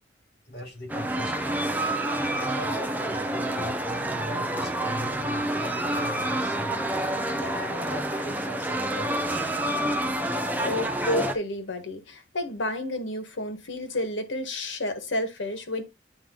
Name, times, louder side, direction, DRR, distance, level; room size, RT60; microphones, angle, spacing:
voice 1, 0.5-1.9 2.4-6.8 7.4-9.7, left 1 dB, 55° left, 4.4 m, -40 dB
sound 1, 0.9-11.4, right 1 dB, 10° right, 0.6 m, -28 dB
voice 2, 10.6-15.8, left 1 dB, 85° left, 1.5 m, -30 dB
8.8 x 3.2 x 3.8 m
head